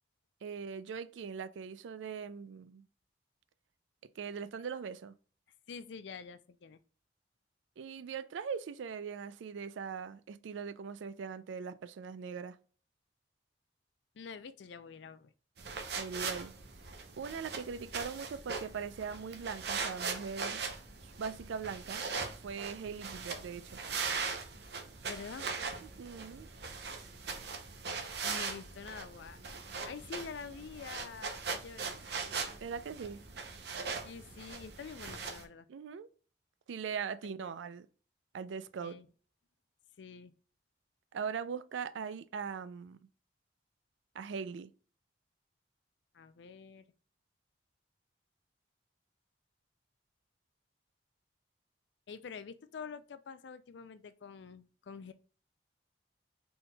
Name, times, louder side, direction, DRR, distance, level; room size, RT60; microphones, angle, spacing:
voice 1, 0.4-2.8 4.2-5.1 7.8-12.6 16.0-16.5 17.2-20.6 21.2-22.0 22.4-23.8 26.0-26.5 32.6-33.2 35.7-36.1 36.7-37.9 38.3-39.0 41.1-43.0 44.1-44.7, right 6 dB, 85° right, 0.4 m, -40 dB
voice 2, 5.7-6.8 14.1-15.3 25.0-25.5 28.2-29.4 29.8-32.0 34.0-35.7 37.4-37.5 38.8-39.1 40.0-40.3 46.1-46.8 52.1-55.1, left 5 dB, 70° left, 0.4 m, -47 dB
sound 1, 15.6-35.4, right 5 dB, 60° right, 0.7 m, -40 dB
4.0 x 3.8 x 2.3 m
head